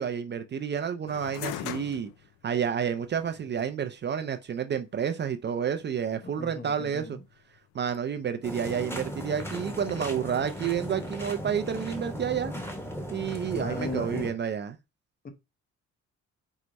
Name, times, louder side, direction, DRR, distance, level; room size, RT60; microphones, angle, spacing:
voice 1, 0.0-2.1 2.4-7.2 7.7-12.5 13.1-14.8, right 8 dB, 35° right, 0.4 m, -30 dB
sound 1, 1.1-10.2, left 12 dB, 85° left, 0.5 m, -45 dB
voice 2, 6.2-7.2 13.5-14.3 15.2-15.3, left 3 dB, 30° left, 0.9 m, -37 dB
sound 2, 8.4-14.3, equal, 10° left, 1.1 m, -37 dB
4.6 x 2.0 x 4.0 m
cardioid pair, 90°, 30 cm